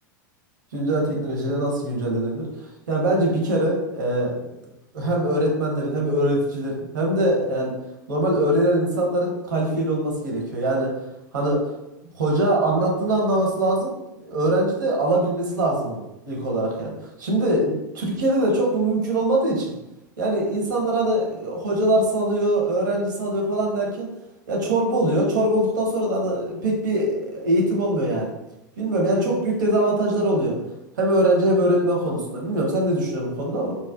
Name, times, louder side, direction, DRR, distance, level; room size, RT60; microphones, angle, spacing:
voice 1, 0.7-2.5 2.9-4.3 4.9-7.7 8.1-10.9 11.3-11.6 12.2-13.9 14.2-16.9 17.2-19.8 20.2-24.1 24.5-28.3 28.8-30.6 31.0-33.8, right 1 dB, 70° right, -1 dB, 0.9 m, -22 dB
3.9 x 2.2 x 2.4 m, 0.91 s
figure-of-eight pair, 85°, 10 cm